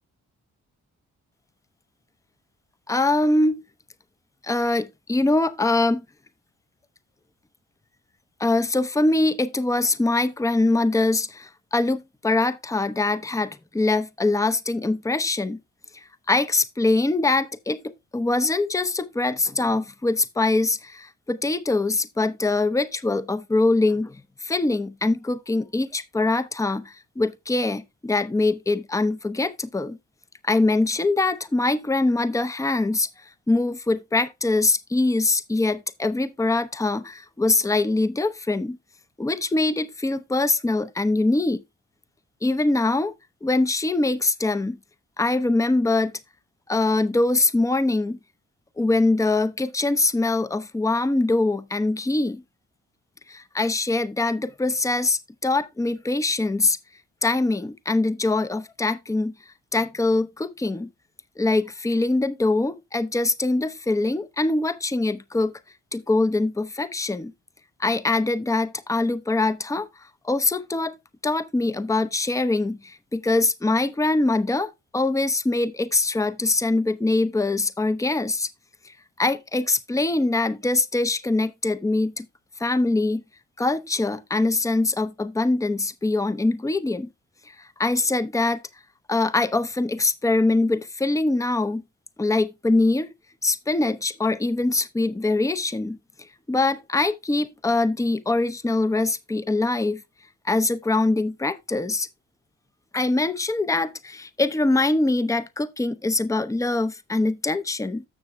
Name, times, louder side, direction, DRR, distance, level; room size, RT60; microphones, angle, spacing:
voice 1, 2.9-3.6 4.4-6.0 8.4-15.6 15.9-30.0 30.4-33.1 33.5-38.8 39.2-41.6 42.4-43.1 43.4-44.8 45.2-46.2 46.7-48.2 48.8-52.4 53.3-56.8 57.2-59.3 59.7-60.9 61.4-65.5 65.9-67.3 67.8-69.9 70.2-78.5 78.8-82.3 82.6-83.2 83.6-87.1 87.6-88.6 89.1-91.8 92.2-93.1 93.4-96.0 96.5-100.0 100.4-102.1 102.9-108.0, left 2 dB, 10° left, 0.7 m, -23 dB
12.5 x 7.0 x 2.2 m
hypercardioid pair, 45°, 35 cm